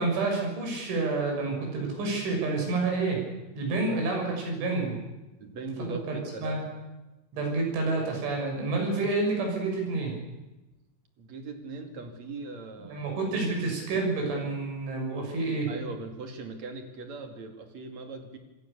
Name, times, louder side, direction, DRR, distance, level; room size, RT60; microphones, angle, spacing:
voice 1, 0.0-3.2 3.6-4.9 5.9-6.6 7.3-10.1 12.9-15.7, right 3 dB, 70° right, 1 dB, 9.3 m, -29 dB
voice 2, 5.4-6.7 11.2-13.3 15.7-18.4, right 3 dB, 45° right, 5 dB, 3.0 m, -40 dB
27.0 x 23.5 x 7.0 m, 1.1 s
omnidirectional pair, 5.6 m